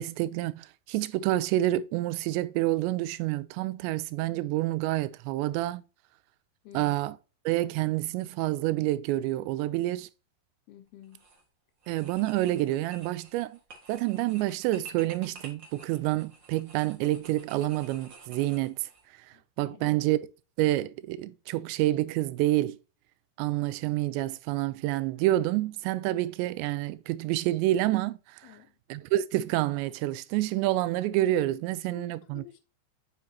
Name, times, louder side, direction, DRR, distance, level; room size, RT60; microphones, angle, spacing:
voice 1, 0.0-5.8 6.7-7.1 7.5-10.1 11.9-13.6 13.9-18.9 19.6-20.2 20.6-22.8 23.4-28.4 28.9-32.6, right 15 dB, 90° right, 2.8 m, -28 dB
voice 2, 6.6-7.0 10.7-11.3 19.3-20.0 28.4-28.8 31.9-32.6, left 13 dB, 75° left, 2.6 m, -50 dB
sound 1, 11.0-11.4 11.8-19.0, right 3 dB, 70° right, 1.1 m, -51 dB
7.7 x 5.8 x 2.8 m
omnidirectional pair, 5.0 m